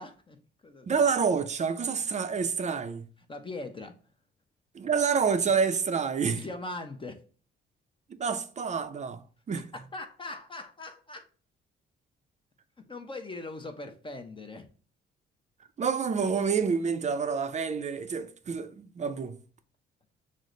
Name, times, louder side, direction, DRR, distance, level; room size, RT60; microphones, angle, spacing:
voice 1, 0.0-0.9 3.3-4.0 6.2-7.2 9.5-11.3 12.9-14.7, left 2 dB, 25° left, 0.8 m, -40 dB
voice 2, 0.9-3.0 4.7-6.4 8.1-9.2 9.5-9.7 15.8-19.4, right 6 dB, 35° right, 0.6 m, -28 dB
6.4 x 2.1 x 3.8 m
cardioid pair, 90°, 20 cm